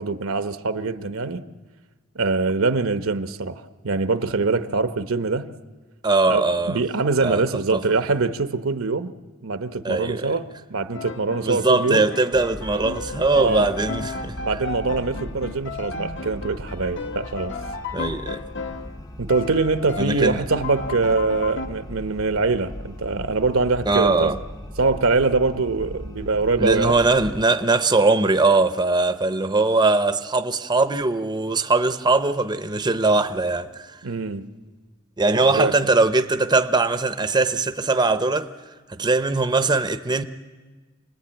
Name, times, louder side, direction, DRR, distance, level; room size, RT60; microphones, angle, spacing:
voice 1, 0.0-1.4 2.1-5.5 6.3-9.1 9.4-12.1 13.3-13.7 14.4-17.5 19.2-24.3 24.8-27.0 34.0-34.5 35.4-35.7, right 3 dB, 70° right, 0.9 m, -23 dB
voice 2, 6.0-6.8 7.2-7.4 7.7-7.8 9.8-10.3 11.4-14.3 17.9-18.4 20.0-20.4 23.9-24.4 26.6-33.9 35.2-38.5 39.0-40.2, right 3 dB, 20° right, 0.7 m, -21 dB
Piano, 10.9-19.0 19.3-21.7, left 4 dB, 60° left, 1.2 m, -35 dB
sound 1, 12.3-27.4, equal, 15° left, 0.7 m, -38 dB
27.0 x 19.5 x 8.9 m
head